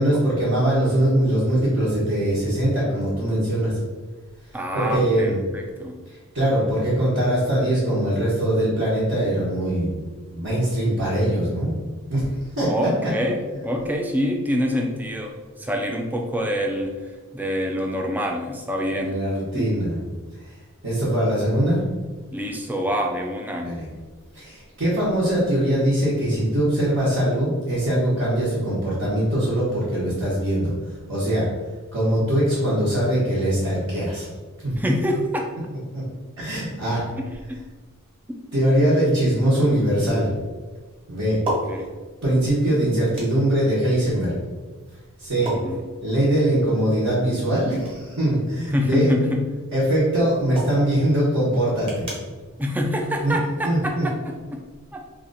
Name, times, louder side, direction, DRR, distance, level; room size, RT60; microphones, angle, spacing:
voice 1, 0.0-3.8 4.7-5.4 6.3-10.0 10.3-11.7 12.1-12.3 12.6-13.1 18.9-20.0 20.8-21.8 23.6-23.9 24.3-30.7 31.1-31.5 31.9-34.3 34.6-34.7 35.9-36.0 36.4-37.0 38.5-40.3 41.1-41.4 42.2-44.3 45.2-45.5 46.0-49.1 49.7-52.1 53.2-53.3 53.6-54.0, right 1 dB, 65° right, -10 dB, 1.1 m, -22 dB
voice 2, 4.5-6.0 12.7-16.9 17.3-19.2 19.5-19.7 22.3-23.7 34.8-35.5 37.2-37.6 41.7-41.9 45.6-45.8 48.7-49.5 52.6-54.6 54.9-55.0, equal, 10° right, 2 dB, 0.3 m, -26 dB
sound 1, 38.7-53.9, right 1 dB, 25° right, 1.2 m, -39 dB
2.8 x 2.5 x 3.9 m, 1.4 s
head